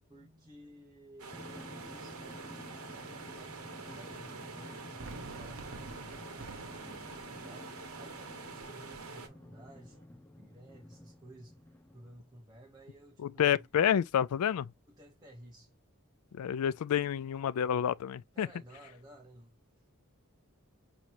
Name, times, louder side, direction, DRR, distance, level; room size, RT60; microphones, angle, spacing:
voice 1, 0.1-13.7 14.9-15.8 18.3-19.9, right 1 dB, 20° right, 1.1 m, -55 dB
sound 1, 1.2-9.3, right 4 dB, 85° right, 1.2 m, -46 dB
Drum, 1.3-12.4, left 1 dB, 10° left, 0.4 m, -52 dB
Fireworks, 5.0-10.0, right 3 dB, 65° right, 0.9 m, -50 dB
voice 2, 13.2-14.7 16.3-18.5, left 9 dB, 85° left, 0.3 m, -29 dB
6.0 x 3.1 x 2.7 m
head